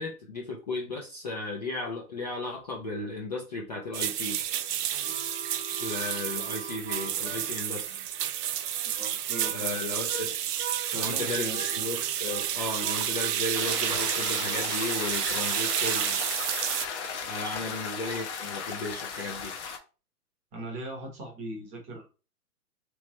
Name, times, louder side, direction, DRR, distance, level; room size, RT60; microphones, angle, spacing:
voice 1, 0.0-4.4 5.8-8.0 9.5-10.3 10.9-16.2 17.3-19.6, left 2 dB, 30° left, -1 dB, 0.4 m, -35 dB
sound 1, 3.9-16.9, right 10 dB, 85° right, 0.6 m, -30 dB
Harmonica, 4.5-10.3 10.6-11.1 11.5-17.5, right 6 dB, 45° right, 1.0 m, -44 dB
voice 2, 9.0-9.9 10.8-11.6 17.6-17.8 20.5-22.1, right 1 dB, 15° right, 0 dB, 0.8 m, -40 dB
sound 2, 13.5-19.8, left 6 dB, 50° left, 0.9 m, -36 dB
3.1 x 3.1 x 3.0 m, 0.34 s
hypercardioid pair, 150°, 46 cm